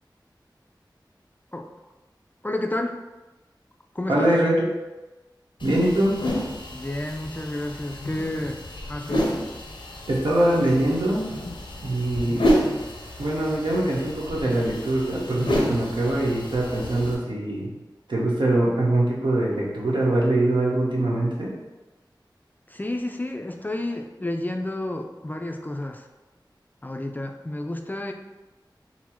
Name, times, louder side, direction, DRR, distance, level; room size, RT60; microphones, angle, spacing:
voice 1, 2.4-3.0 3.9-4.3 6.7-8.6 8.9-9.3 22.7-26.1 26.8-28.1, left 1 dB, 20° left, 4 dB, 0.4 m, -30 dB
voice 2, 4.1-4.7 5.6-6.2 10.1-11.3 11.8-12.5 13.2-17.7 18.1-21.5, right 1 dB, 75° right, -4 dB, 1.0 m, -23 dB
sound 1, 5.6-17.1, equal, 85° left, 0.7 m, -30 dB
4.2 x 2.0 x 4.4 m, 1.1 s
wide cardioid pair, 50°, 8 cm